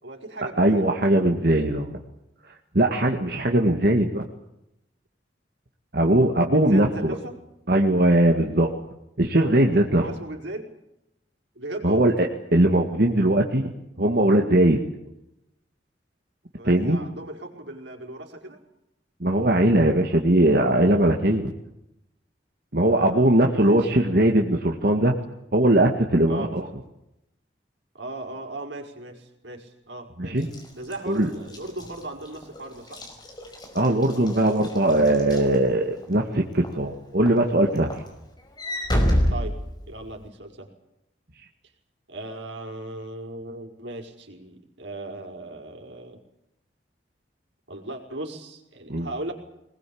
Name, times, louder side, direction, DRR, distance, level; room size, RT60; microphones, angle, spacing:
voice 1, 0.0-0.9 6.5-7.4 9.9-10.7 11.6-12.1 16.6-18.6 22.9-23.9 26.3-26.5 27.9-30.5 30.7-33.0 39.3-39.5 39.9-40.7 42.1-46.2 47.7-49.3, right 2 dB, 85° right, 3 dB, 5.2 m, -37 dB
voice 2, 0.6-1.9 2.7-4.2 5.9-7.2 7.7-8.7 9.2-10.0 11.8-14.8 16.6-17.0 19.2-21.5 22.7-25.1 25.5-26.6 30.2-30.5 31.1-31.3 33.8-38.0 48.9-49.1, right 1 dB, 55° right, 2 dB, 2.0 m, -20 dB
Walk footsteps / Slam, 30.4-36.1 36.6-36.9 37.3-40.3, equal, 25° left, 5.2 m, -29 dB
22.5 x 21.0 x 8.7 m, 0.86 s
head